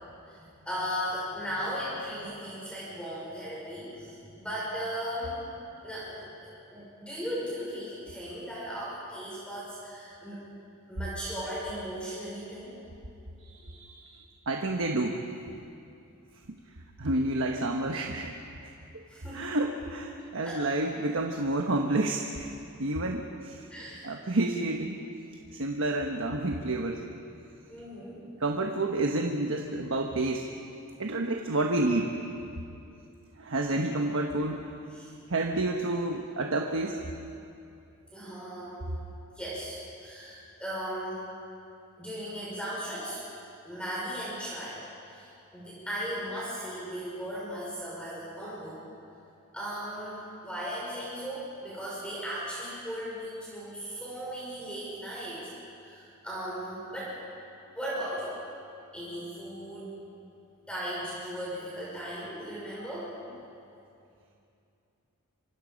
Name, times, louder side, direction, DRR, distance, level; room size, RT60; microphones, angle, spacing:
voice 1, 0.2-5.6 5.8-10.5 10.9-12.8 19.1-19.6 20.4-20.6 23.7-24.1 27.7-28.4 34.9-35.1 38.1-38.9 39.4-41.3 42.0-43.2 43.6-44.8 45.1-48.8 49.5-55.4 55.8-57.1 57.7-58.3 58.9-60.0 60.7-63.1, equal, 5° left, -7 dB, 5.8 m, -37 dB
voice 2, 13.5-15.3 17.0-18.3 18.6-18.7 19.3-22.5 22.8-23.7 24.0-25.1 25.5-27.0 28.4-30.5 31.0-32.1 33.4-34.7 35.3-37.0, right 2 dB, 60° right, 2 dB, 1.3 m, -29 dB
26.5 x 25.0 x 5.3 m, 2.7 s
head